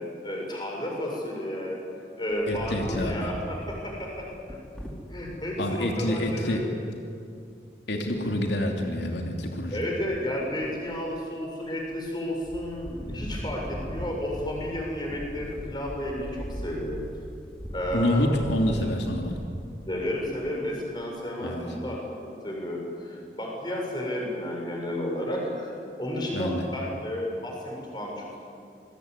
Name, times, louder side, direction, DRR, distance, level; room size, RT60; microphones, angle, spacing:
voice 1, 0.2-1.8 2.2-4.6 4.8-6.9 9.7-17.0 17.7-18.3 19.9-22.0 22.4-25.7 26.0-28.3, left 1 dB, 25° left, -1 dB, 7.3 m, -32 dB
Wind, 2.3-5.4 6.0-6.1 6.2-6.6 8.1-8.7 9.2-9.7 10.0-11.2 11.6-12.1 12.4-20.6, equal, 5° left, 3.4 m, -40 dB
voice 2, 2.5-3.3 5.6-6.6 7.9-9.8 17.9-19.3 21.4-21.7 26.3-26.6, left 1 dB, 80° left, 2 dB, 2.9 m, -27 dB
27.5 x 22.0 x 9.9 m, 2.4 s
head